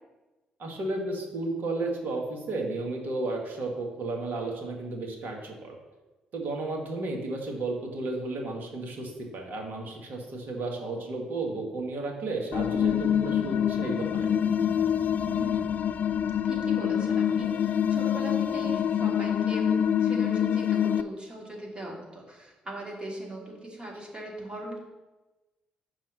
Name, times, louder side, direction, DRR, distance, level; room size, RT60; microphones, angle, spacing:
voice 1, 0.6-5.7 6.3-14.3, right 2 dB, 60° right, 1 dB, 1.7 m, -33 dB
sound 1, 12.5-21.0, left 9 dB, 50° left, 0.3 m, -26 dB
voice 2, 15.2-15.9 16.4-19.7 20.0-24.8, right 1 dB, 30° right, -2 dB, 2.7 m, -40 dB
5.9 x 4.8 x 6.4 m, 1.1 s
hypercardioid pair, 45°, 4 cm